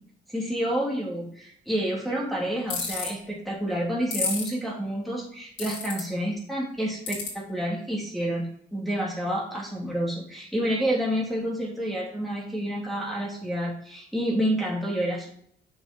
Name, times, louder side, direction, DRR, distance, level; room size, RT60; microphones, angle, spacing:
voice 1, 0.3-8.4 8.7-15.3, equal, ahead, -5 dB, 2.9 m, -29 dB
sound 1, 2.7-3.1 4.1-4.5 5.6-6.0 7.1-7.3, left 5 dB, 70° left, 3.2 m, -29 dB
6.5 x 6.4 x 4.4 m, 0.64 s
cardioid pair, 90°, 20 cm